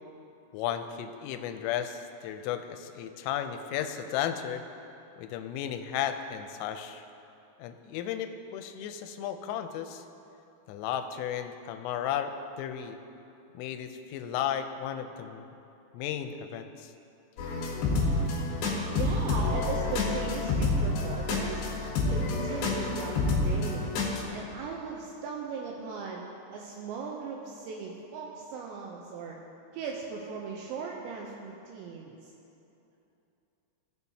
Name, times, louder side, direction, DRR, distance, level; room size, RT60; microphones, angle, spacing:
voice 1, 0.5-4.6 5.2-7.0 7.6-10.0 10.7-13.0 13.5-15.5 15.9-16.9, left 9 dB, 90° left, 8 dB, 3.2 m, -34 dB
sound 1, 17.4-24.2, left 3 dB, 70° left, 3.2 m, -28 dB
voice 2, 18.9-21.7 22.1-23.9 24.3-29.4 29.7-32.1, right 5 dB, 85° right, -1 dB, 2.6 m, -38 dB
16.0 x 7.1 x 2.7 m, 2.8 s
omnidirectional pair, 5.7 m